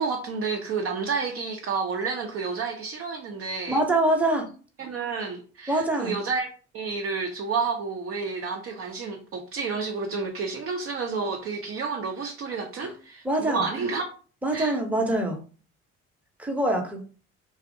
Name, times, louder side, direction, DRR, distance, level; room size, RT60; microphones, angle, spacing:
voice 1, 0.0-3.8 4.8-6.5 6.7-14.0 14.5-14.7, right 4 dB, 40° right, 0.5 m, -30 dB
voice 2, 3.7-4.4 5.7-6.2 12.8-12.9 13.2-13.7 14.4-15.4 16.4-17.0, right 1 dB, 5° right, 0.7 m, -24 dB
2.5 x 2.0 x 2.6 m
hypercardioid pair, 55°, 33 cm